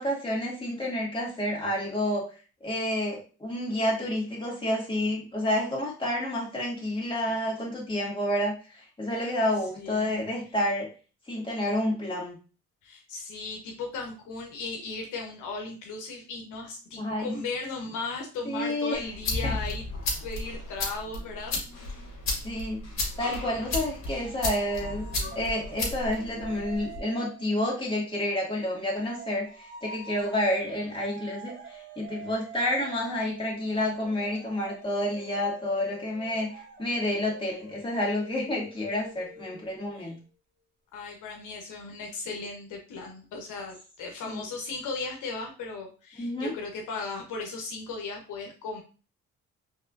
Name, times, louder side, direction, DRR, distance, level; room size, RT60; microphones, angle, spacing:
voice 1, 0.0-2.2 2.6-10.9 11.3-12.4 17.0-17.3 18.5-19.0 19.4-19.6 22.4-22.8 23.2-25.1 25.3-40.2 44.3-44.4 46.2-46.5, left 1 dB, 15° left, -4 dB, 2.3 m, -29 dB
voice 2, 9.7-10.2 12.8-19.9 20.2-21.9 39.9-40.1 40.9-48.8, left 3 dB, 80° left, 1 dB, 1.1 m, -37 dB
sound 1, 18.9-27.0, left 2 dB, 60° left, 1.9 m, -34 dB
sound 2, 23.7-28.1 28.6-40.0, right 3 dB, 35° right, 1.3 m, -46 dB
4.7 x 3.4 x 2.6 m, 0.35 s
cardioid pair, 90°, 30 cm